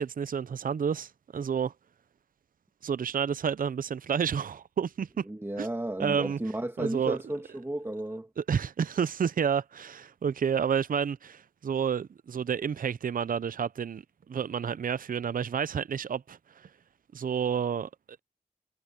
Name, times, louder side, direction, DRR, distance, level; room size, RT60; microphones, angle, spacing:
voice 1, 0.0-1.7 2.8-5.3 5.6-5.7 6.0-6.4 6.8-7.2 8.4-14.0 14.3-16.7 17.1-17.9, right 7 dB, 60° right, 0.5 m, -30 dB
voice 2, 5.3-8.3, right 1 dB, 15° right, 2.1 m, -33 dB
wide cardioid pair, 75°, 16 cm